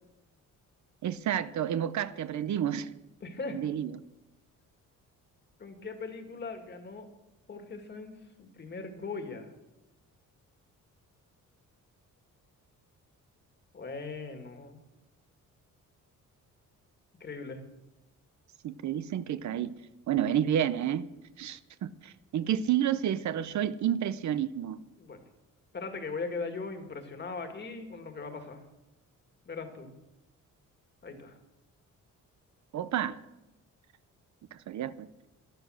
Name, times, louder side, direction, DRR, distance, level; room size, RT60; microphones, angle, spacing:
voice 1, 1.0-2.9 3.5-3.9 18.6-19.7 20.1-21.1 21.4-24.8 32.7-33.2 34.5-35.1, right 10 dB, 60° right, 14 dB, 0.7 m, -30 dB
voice 2, 3.2-3.6 5.6-7.1 7.5-9.5 13.7-14.8 17.2-17.6 25.0-25.2 25.7-28.6 29.5-29.9 31.0-31.4, left 4 dB, 35° left, 6 dB, 2.0 m, -39 dB
13.0 x 12.0 x 6.3 m, 0.96 s
cardioid pair, 150°, 32 cm